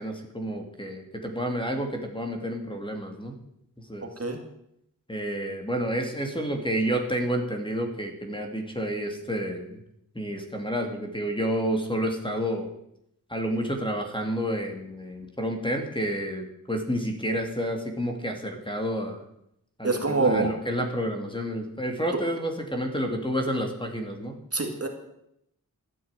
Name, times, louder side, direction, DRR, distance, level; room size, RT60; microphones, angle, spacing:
voice 1, 0.0-3.4 3.8-4.1 5.1-9.8 10.1-12.7 13.3-19.2 19.8-24.4, equal, 15° left, 4 dB, 2.5 m, -30 dB
voice 2, 19.8-20.5 24.5-24.9, right 3 dB, 45° right, 4 dB, 2.5 m, -25 dB
13.5 x 9.3 x 8.9 m, 0.77 s
wide cardioid pair, 90°, 33 cm